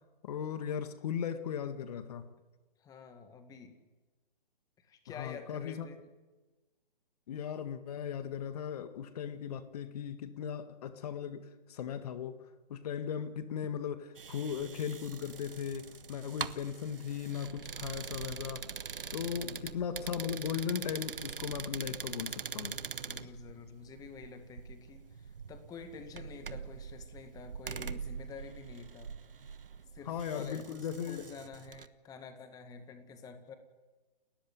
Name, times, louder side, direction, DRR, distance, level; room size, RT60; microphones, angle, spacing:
voice 1, 0.2-2.3 5.2-5.9 7.3-12.4 12.7-18.7 19.1-22.8 30.1-31.3, left 8 dB, 40° left, 10 dB, 1.8 m, -37 dB
voice 2, 2.8-3.8 4.8-6.0 19.3-19.7 22.9-29.2 29.9-33.6, left 5 dB, 10° left, 8 dB, 1.9 m, -49 dB
sound 1, 14.2-31.9, right 6 dB, 70° right, 1.2 m, -43 dB
29.5 x 14.0 x 9.6 m, 1.2 s
figure-of-eight pair, 135°, 29 cm